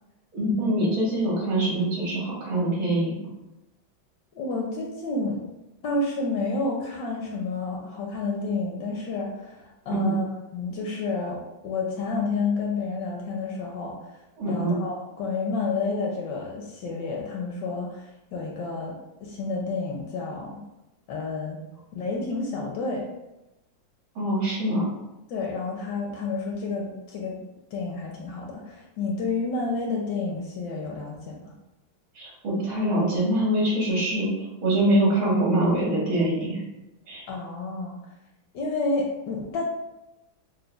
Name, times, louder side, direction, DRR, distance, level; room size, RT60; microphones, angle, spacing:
voice 1, 0.3-3.3 9.9-10.1 14.4-14.8 24.2-24.9 32.2-34.3 34.6-36.6 37.1-37.2, right 1 dB, 75° right, -5 dB, 2.2 m, -24 dB
voice 2, 4.3-5.4 5.8-14.1 14.5-20.6 21.1-21.6 21.9-23.0 25.3-27.4 27.7-31.4 37.3-38.0 38.5-39.6, left 3 dB, 75° left, -1 dB, 1.1 m, -30 dB
6.2 x 2.1 x 2.3 m, 0.95 s
omnidirectional pair, 2.2 m